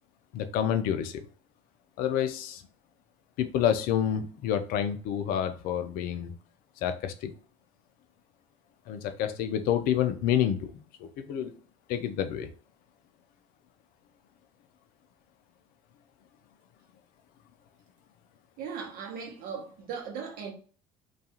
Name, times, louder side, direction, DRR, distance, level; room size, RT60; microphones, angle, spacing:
voice 1, 0.3-1.2 2.0-2.6 3.4-6.3 6.8-7.3 8.9-11.5 11.9-12.5, left 10 dB, 60° left, 0.4 m, -28 dB
voice 2, 18.6-20.5, right 6 dB, 60° right, 0.9 m, -38 dB
2.3 x 2.3 x 2.8 m
hypercardioid pair, 60°, 17 cm